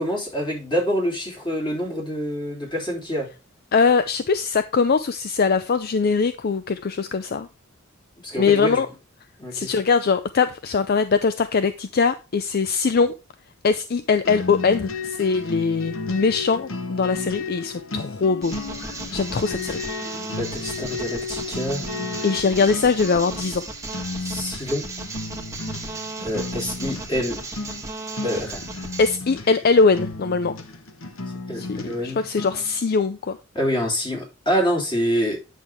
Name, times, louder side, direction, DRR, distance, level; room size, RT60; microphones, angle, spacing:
voice 1, 0.0-3.3 8.2-8.8 9.4-9.7 20.4-21.8 24.2-24.8 26.2-27.4 28.2-28.6 31.5-32.2 33.5-35.4, equal, 25° left, 3.5 m, -26 dB
voice 2, 3.7-7.5 8.4-8.9 9.5-13.1 13.6-18.5 19.1-19.8 22.2-23.6 29.0-30.5 31.5-33.4, left 5 dB, 50° left, 0.5 m, -21 dB
sound 1, 14.2-32.8, left 3 dB, 85° left, 1.2 m, -34 dB
sound 2, 18.4-29.2, right 3 dB, 15° right, 1.4 m, -35 dB
9.1 x 6.4 x 3.5 m
head